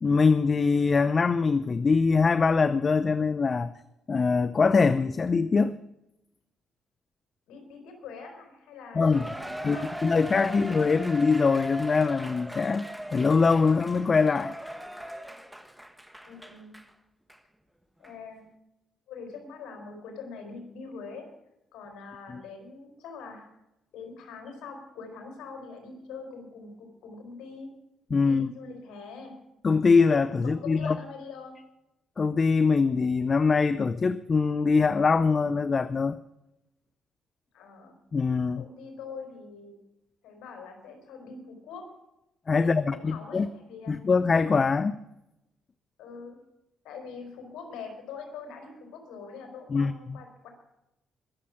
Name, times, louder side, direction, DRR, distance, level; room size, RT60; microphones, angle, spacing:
voice 1, 0.0-3.7 4.1-5.8 8.9-9.3 9.6-14.6 22.3-22.4 28.1-28.5 29.6-31.0 32.2-36.2 38.1-38.6 42.5-43.5 43.9-45.0 49.7-50.2, left 4 dB, 35° left, 14 dB, 0.6 m, -23 dB
voice 2, 7.5-9.9 16.2-16.8 18.0-18.4 19.1-21.3 21.7-23.5 23.9-27.7 28.2-29.3 30.4-31.5 37.5-38.0 38.6-39.8 40.2-41.9 42.6-44.0 46.0-46.4 46.8-50.5, left 4 dB, 85° left, 4 dB, 4.3 m, -43 dB
Cheering, 9.1-16.9 17.3-17.4 18.0-18.1, equal, 5° right, 1.3 m, -39 dB
21.5 x 7.5 x 5.8 m, 0.88 s
cardioid pair, 90°, 0 cm